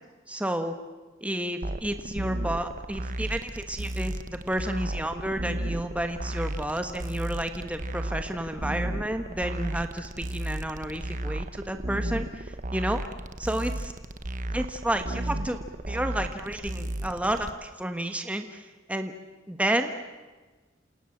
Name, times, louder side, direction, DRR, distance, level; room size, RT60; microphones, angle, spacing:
voice 1, 0.3-0.7 1.2-13.0 13.4-13.9 14.5-15.6 15.9-19.1 19.5-20.0, right 1 dB, 5° right, 7 dB, 1.3 m, -31 dB
sound 1, 1.6-17.5, right 1 dB, 40° right, 1.3 m, -34 dB
28.5 x 28.0 x 7.4 m, 1.2 s
head